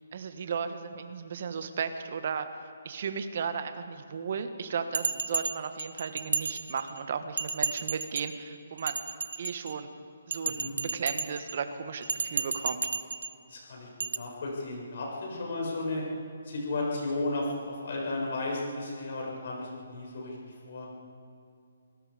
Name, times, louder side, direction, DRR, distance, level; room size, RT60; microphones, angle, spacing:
voice 1, 0.1-2.5 2.8-9.0 9.4-9.9 10.3-12.9, right 6 dB, 45° right, 8 dB, 1.5 m, -35 dB
Bell, 4.9-7.0 7.4-8.4 8.8-9.8 10.3-11.6 12.0-13.3 14.0-14.2, right 5 dB, 80° right, 0.9 m, -33 dB
voice 2, 13.5-13.9 14.1-16.0 16.5-20.3 20.7-20.9, left 2 dB, 50° left, -2 dB, 7.4 m, -34 dB
28.0 x 18.5 x 5.2 m, 2.4 s
hypercardioid pair, 170°, 0 cm